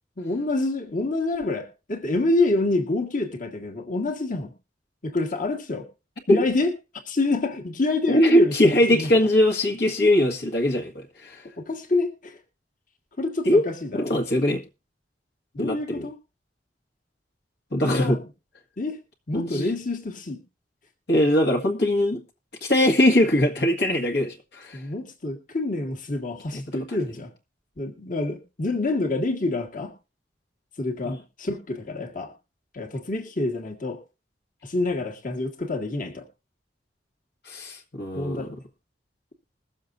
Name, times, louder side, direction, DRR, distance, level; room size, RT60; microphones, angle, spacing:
voice 1, 0.2-4.5 5.0-5.9 6.3-6.7 7.1-9.1 11.6-12.4 13.2-14.1 15.5-16.1 17.8-18.2 18.8-19.0 19.3-20.4 24.7-27.3 27.8-29.9 30.8-32.3 32.7-34.0 34.6-36.2 38.1-38.6, left 2 dB, 50° left, 1.9 m, -27 dB
voice 2, 8.1-11.5 13.5-13.7 13.9-14.6 15.6-16.1 17.7-18.2 19.3-19.7 21.1-22.2 22.6-24.8 26.5-26.8 31.0-31.2 37.4-38.5, left 1 dB, 65° left, 1.9 m, -21 dB
21.5 x 7.2 x 2.5 m
head